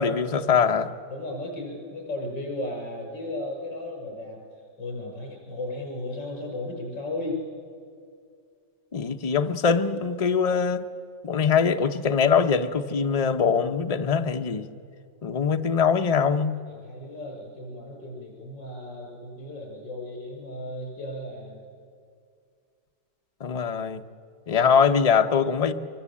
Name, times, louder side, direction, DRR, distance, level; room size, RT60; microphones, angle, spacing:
voice 1, 0.0-0.9 8.9-10.8 11.2-14.7 15.2-16.6 23.4-24.0 24.5-25.7, left 6 dB, 50° left, 6 dB, 0.4 m, -22 dB
voice 2, 1.1-4.4 4.8-7.4 16.7-21.6, left 1 dB, 80° left, 0 dB, 7.0 m, -35 dB
23.5 x 23.0 x 8.5 m, 2.3 s
omnidirectional pair, 1.9 m